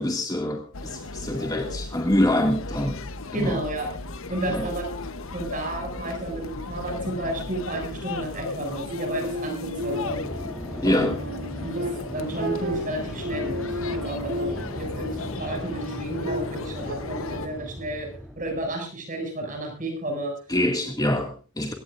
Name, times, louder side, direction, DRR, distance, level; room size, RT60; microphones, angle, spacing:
voice 1, 0.0-3.0 3.3-3.6 4.5-4.7 10.8-11.2 20.5-21.7, left 1 dB, 15° left, 2 dB, 2.2 m, -25 dB
sound 1, 0.7-17.5, left 3 dB, 65° left, 1.1 m, -36 dB
voice 2, 3.3-3.9 4.3-4.9 5.3-10.2 10.8-11.2 11.6-11.9 12.1-18.1 18.4-20.3, right 1 dB, 35° right, 3 dB, 6.9 m, -32 dB
sound 2, 8.9-10.4 10.9-14.9 15.4-17.0, equal, 65° right, 3.0 m, -33 dB
sound 3, 9.7-18.7, equal, ahead, 3.5 m, -37 dB
24.0 x 17.5 x 2.6 m, 0.36 s
head